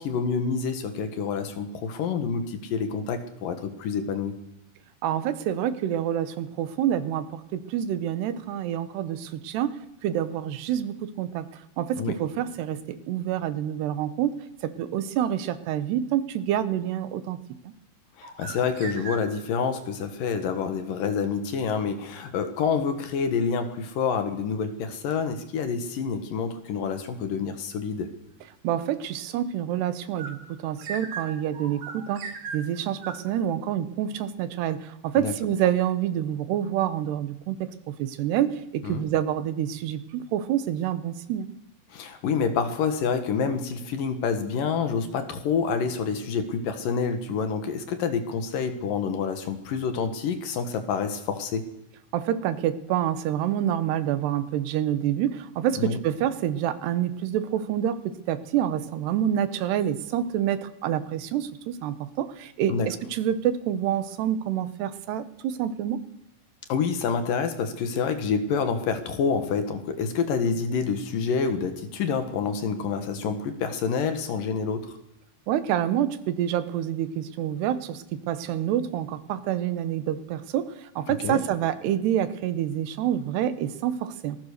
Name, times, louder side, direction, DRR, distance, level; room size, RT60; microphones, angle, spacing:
voice 1, 0.0-4.3 12.0-12.2 18.2-28.1 35.2-35.3 38.8-39.0 41.9-51.7 55.8-56.0 62.7-62.9 66.7-75.0 81.1-81.4, left 5 dB, 65° left, 8 dB, 3.0 m, -27 dB
voice 2, 5.0-11.5 11.8-14.3 14.6-17.4 17.6-17.7 28.6-32.3 32.5-37.7 38.0-41.5 52.1-58.0 58.3-66.0 75.5-84.4, right 10 dB, 90° right, 12 dB, 3.3 m, -27 dB
sound 1, 18.2-19.6 30.2-33.3, right 5 dB, 55° right, 3.8 m, -38 dB
25.5 x 19.5 x 6.7 m, 0.83 s
omnidirectional pair, 4.6 m